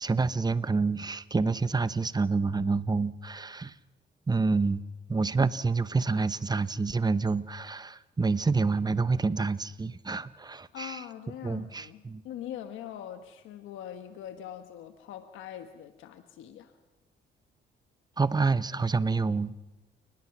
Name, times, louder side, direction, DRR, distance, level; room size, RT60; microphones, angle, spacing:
voice 1, 0.0-3.7 4.3-4.8 5.1-11.0 11.4-12.2 18.2-19.5, right 4 dB, 20° right, 15 dB, 0.9 m, -28 dB
voice 2, 10.7-16.7, left 10 dB, 90° left, 8 dB, 1.3 m, -42 dB
30.0 x 19.5 x 6.0 m, 1.1 s
cardioid pair, 90°, 20 cm